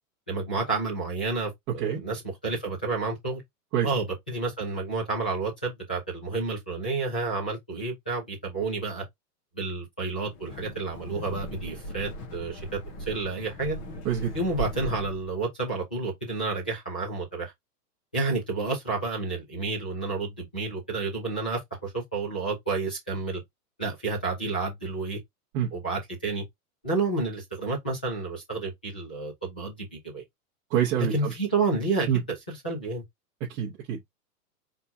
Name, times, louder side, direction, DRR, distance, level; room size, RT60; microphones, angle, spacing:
voice 1, 0.3-3.4 3.8-9.0 9.5-12.6 13.1-13.8 14.3-17.5 18.1-23.4 23.8-25.2 25.7-26.4 26.8-30.2 31.0-33.0, right 3 dB, 5° left, 0.3 m, -30 dB
Wind, 10.3-15.3, equal, 25° left, 0.9 m, -38 dB
voice 2, 30.7-31.3 32.1-32.2 33.4-34.0, right 9 dB, 25° right, 1.0 m, -26 dB
5.4 x 3.6 x 2.7 m
supercardioid pair, 160°, 47 cm